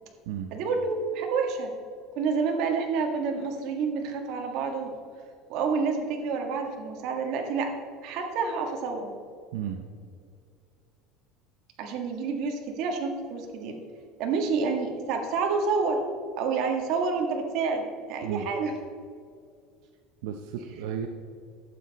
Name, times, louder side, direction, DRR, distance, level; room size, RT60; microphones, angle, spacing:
voice 1, 0.5-1.7 2.2-4.9 5.5-7.7 8.0-9.1 11.8-13.8 14.2-16.0 16.4-18.7, right 4 dB, 55° right, 3 dB, 1.7 m, -28 dB
voice 2, 9.5-9.8 18.2-18.5 20.2-21.1, right 9 dB, 85° right, 5 dB, 0.7 m, -33 dB
11.5 x 8.4 x 4.1 m, 2.2 s
cardioid pair, 150°, 0 cm